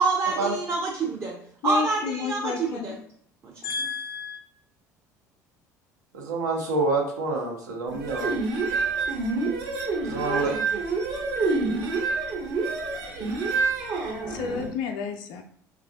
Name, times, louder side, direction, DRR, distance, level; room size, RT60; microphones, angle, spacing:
voice 1, 0.0-1.4 1.6-2.9 3.4-3.7 10.3-10.7, right 4 dB, 30° right, -2 dB, 0.6 m, -27 dB
voice 2, 1.6-3.0 3.6-4.4 14.1-15.4, left 6 dB, 55° left, 5 dB, 0.4 m, -31 dB
voice 3, 6.1-8.3 10.0-10.5, right 3 dB, 75° right, 0 dB, 0.7 m, -27 dB
sound 1, 7.9-14.7, right 3 dB, 50° right, 0.9 m, -27 dB
3.1 x 2.4 x 2.4 m, 0.63 s
figure-of-eight pair, 60°, 9 cm